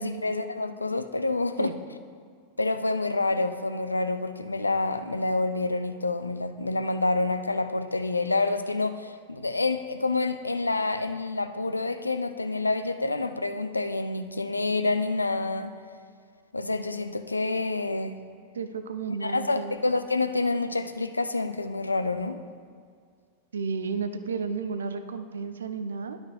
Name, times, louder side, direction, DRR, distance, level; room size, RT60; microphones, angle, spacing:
voice 1, 0.0-1.7 2.6-15.7 16.5-18.2 19.2-22.4, left 3 dB, 80° left, 10 dB, 0.3 m, -28 dB
voice 2, 18.5-19.8 23.5-26.2, right 5 dB, 70° right, 10 dB, 0.4 m, -32 dB
11.5 x 5.1 x 3.2 m, 2.1 s
figure-of-eight pair, 90°, 0 cm